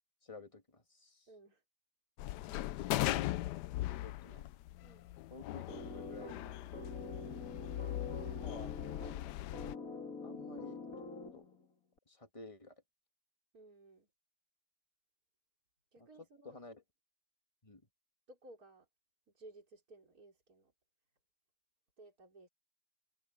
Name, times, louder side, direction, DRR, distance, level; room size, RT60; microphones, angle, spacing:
voice 1, 0.2-1.3 3.9-4.5 5.3-6.7 8.4-8.7 10.2-10.8 11.3-11.5 12.1-12.8 16.0-16.1 16.4-16.8 17.6-17.8, left 3 dB, 15° left, 1.9 m, -53 dB
voice 2, 1.3-1.6 4.8-5.1 7.2-7.8 13.5-14.1 15.9-16.6 18.3-18.9 19.3-20.7 22.0-22.5, right 2 dB, 45° right, 5.0 m, -58 dB
sound 1, 2.2-9.7, left 15 dB, 80° left, 0.9 m, -39 dB
sound 2, 5.7-11.7, left 3 dB, 40° left, 2.8 m, -46 dB
omnidirectional pair, 2.3 m